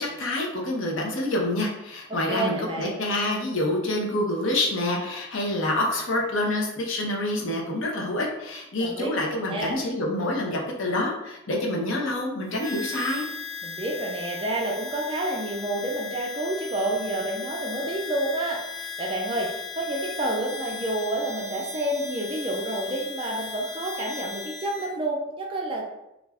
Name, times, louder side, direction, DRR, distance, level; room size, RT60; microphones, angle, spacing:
voice 1, 0.0-13.2, left 1 dB, 65° left, -1 dB, 0.6 m, -27 dB
voice 2, 2.3-3.0 8.8-9.1 9.5-9.8 13.6-25.8, right 1 dB, 25° right, 0 dB, 0.4 m, -29 dB
Harmonica, 12.5-24.9, left 4 dB, 15° left, 0.8 m, -37 dB
2.4 x 2.2 x 3.3 m, 0.89 s
head